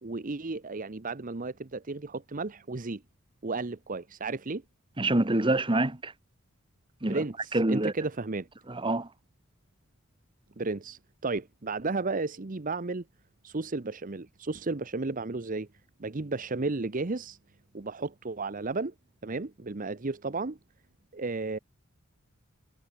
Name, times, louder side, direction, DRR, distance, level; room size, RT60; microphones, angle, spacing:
voice 1, 0.0-3.0 3.4-4.6 7.0-8.5 10.6-13.0 13.4-15.7 16.0-17.4 17.7-18.9 19.2-20.6 21.1-21.6, right 3 dB, 40° right, 0.9 m, -33 dB
voice 2, 5.0-6.1 7.0-7.2 7.5-7.9 8.7-9.1, right 2 dB, 25° right, 1.3 m, -26 dB
head